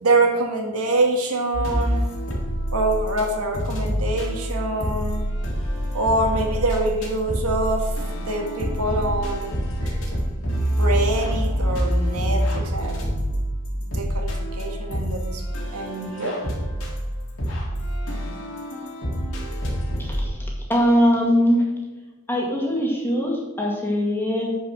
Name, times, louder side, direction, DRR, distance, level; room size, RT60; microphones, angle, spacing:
voice 1, 0.0-2.1 2.7-5.2 5.9-9.9 10.8-13.0 13.8-15.4 15.7-16.3, right 2 dB, 80° right, 2 dB, 1.7 m, -25 dB
sound 1, 1.5-3.2 3.5-20.3, equal, 65° left, 2.3 m, -26 dB
voice 2, 20.0-20.4 20.7-21.6 22.3-24.5, equal, 10° left, -2 dB, 1.9 m, -21 dB
10.0 x 5.1 x 6.1 m, 1.1 s
head